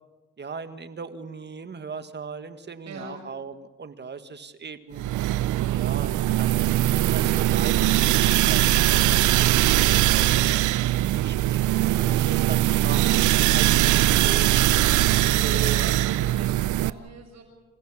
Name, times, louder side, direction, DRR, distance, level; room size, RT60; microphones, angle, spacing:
voice 1, 0.4-5.0 5.7-10.3 11.0-14.5 15.4-15.9, right 5 dB, 35° right, 10 dB, 1.7 m, -38 dB
voice 2, 2.9-3.2 15.1-17.4, right 3 dB, 60° right, 3 dB, 7.2 m, -41 dB
sound 1, 5.0-16.9, right 14 dB, 75° right, 0.6 m, -21 dB
27.5 x 16.0 x 7.3 m, 1.2 s
cardioid pair, 90°, 30 cm